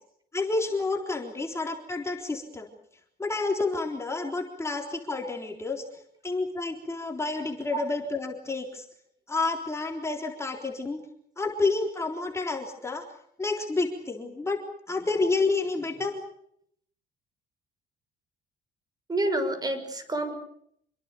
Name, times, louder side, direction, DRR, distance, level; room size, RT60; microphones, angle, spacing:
voice 1, 0.3-2.7 3.2-5.8 6.2-8.8 9.3-11.0 11.4-13.0 13.4-14.6 14.9-16.1, left 3 dB, 15° left, 2 dB, 3.8 m, -29 dB
voice 2, 19.1-20.3, right 1 dB, 25° right, 9 dB, 6.6 m, -28 dB
27.5 x 22.5 x 6.9 m, 0.69 s
cardioid pair, 110°, 17 cm